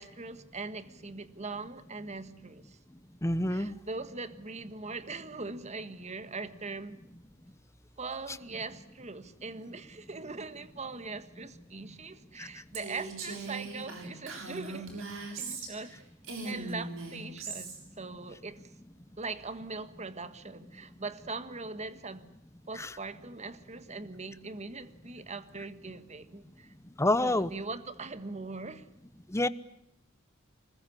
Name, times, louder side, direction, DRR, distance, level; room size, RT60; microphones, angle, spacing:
voice 1, 0.0-2.8 3.5-7.0 8.0-16.0 16.4-18.7 19.2-22.3 22.7-26.7 27.2-28.9, right 3 dB, 35° right, 1.5 m, -41 dB
voice 2, 3.2-3.8 12.4-12.5 22.8-22.9 27.0-27.5 29.3-29.5, left 1 dB, 15° left, 0.9 m, -27 dB
Female speech woman speaking, 12.7-15.9 16.2-17.8, right 3 dB, 70° right, 6.8 m, -39 dB
25.5 x 21.0 x 9.9 m
head